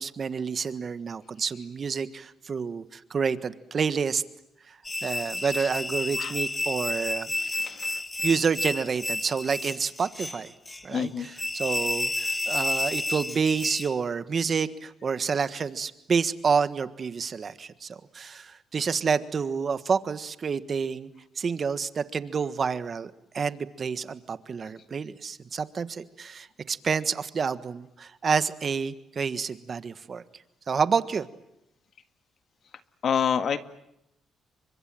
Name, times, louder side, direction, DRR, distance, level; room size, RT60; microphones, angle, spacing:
voice 1, 0.0-4.2 5.0-7.3 8.2-10.5 10.8-11.1 11.5-21.1 21.4-30.2 30.7-31.3, right 5 dB, 45° right, 12 dB, 1.5 m, -28 dB
sound 1, 4.8-14.0, left 2 dB, 15° left, 1.4 m, -31 dB
voice 2, 5.0-5.7 6.2-6.3 7.4-8.0 10.9-11.3 33.0-33.6, left 7 dB, 60° left, 9 dB, 1.8 m, -29 dB
30.0 x 25.0 x 7.7 m, 0.83 s
cardioid pair, 90°, 0 cm